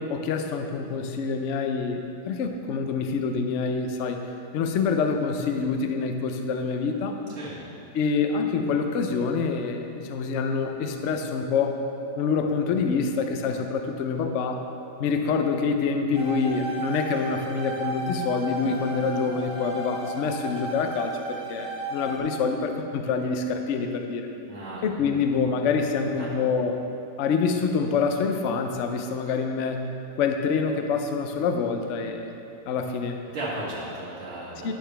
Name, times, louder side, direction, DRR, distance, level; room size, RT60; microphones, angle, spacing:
voice 1, 0.0-4.2 4.5-7.2 7.9-11.8 12.2-14.7 15.0-24.3 24.8-26.8 27.2-29.8 30.1-32.3 32.7-33.2 34.6-34.7, left 5 dB, 75° left, 5 dB, 0.7 m, -26 dB
voice 2, 7.3-7.6 24.5-25.2 26.2-26.3 33.3-34.7, right 1 dB, 40° right, -8 dB, 2.0 m, -35 dB
sound 1, 16.1-22.2, right 2 dB, 10° right, 0.3 m, -34 dB
11.0 x 6.7 x 3.3 m, 2.7 s
omnidirectional pair, 1.9 m